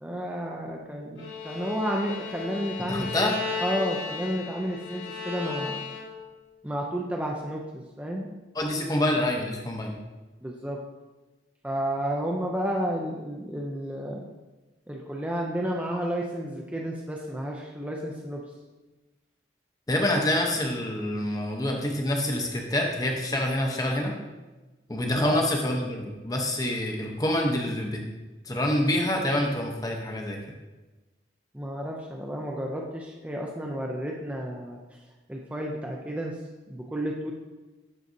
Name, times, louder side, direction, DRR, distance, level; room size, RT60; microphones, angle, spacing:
voice 1, 0.0-5.8 6.6-8.3 10.4-10.8 11.6-14.2 14.9-18.4 25.1-25.4 31.5-34.8 35.3-36.4 36.7-37.3, equal, 10° right, -1 dB, 0.4 m, -31 dB
Bowed string instrument, 1.2-6.3, left 4 dB, 85° left, 1.8 m, -35 dB
voice 2, 2.9-3.4 8.5-9.9 19.9-24.1 24.9-28.0 28.5-30.4, left 1 dB, 20° left, 1 dB, 0.7 m, -26 dB
11.0 x 4.0 x 2.6 m, 1.2 s
head